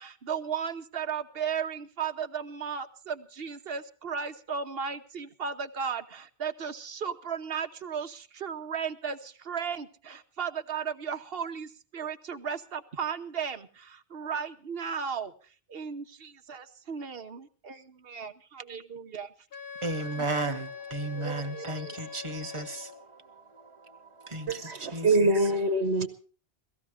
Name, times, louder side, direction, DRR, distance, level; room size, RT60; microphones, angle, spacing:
voice 1, 0.0-15.3 15.7-19.3 20.2-20.3 21.1-22.3, right 6 dB, 65° right, 1.2 m, -35 dB
Wind instrument woodwind instrument, 19.5-23.1, left 6 dB, 65° left, 1.3 m, -43 dB
voice 2, 19.8-24.6 24.9-25.1, right 2 dB, 30° right, 1.3 m, -35 dB
voice 3, 24.5-26.1, right 2 dB, 85° right, 1.3 m, -24 dB
17.5 x 14.5 x 5.0 m
omnidirectional pair, 1.1 m